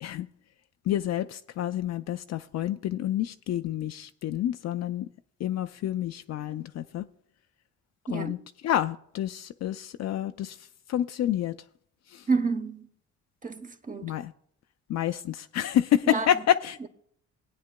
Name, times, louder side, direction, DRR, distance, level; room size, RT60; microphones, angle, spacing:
voice 1, 0.9-5.1 5.4-7.1 8.1-8.4 8.6-11.6 12.1-12.3 14.0-14.3 14.9-16.9, left 11 dB, 60° left, 0.4 m, -28 dB
voice 2, 12.3-12.9 13.4-14.1 16.0-16.3, right 4 dB, 25° right, 0.9 m, -29 dB
18.0 x 9.3 x 2.2 m
cardioid pair, 90°, 30 cm